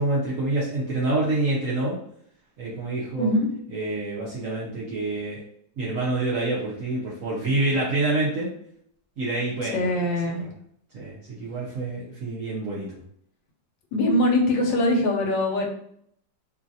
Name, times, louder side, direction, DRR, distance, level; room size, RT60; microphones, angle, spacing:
voice 1, 0.0-2.0 2.6-3.3 3.7-5.4 5.8-8.5 9.2-9.9 10.9-12.9, right 2 dB, 65° right, -5 dB, 0.8 m, -27 dB
voice 2, 3.2-3.6 9.7-10.4 13.9-15.7, left 1 dB, 75° left, 0 dB, 1.3 m, -22 dB
3.1 x 2.4 x 2.6 m, 0.69 s
omnidirectional pair, 2.0 m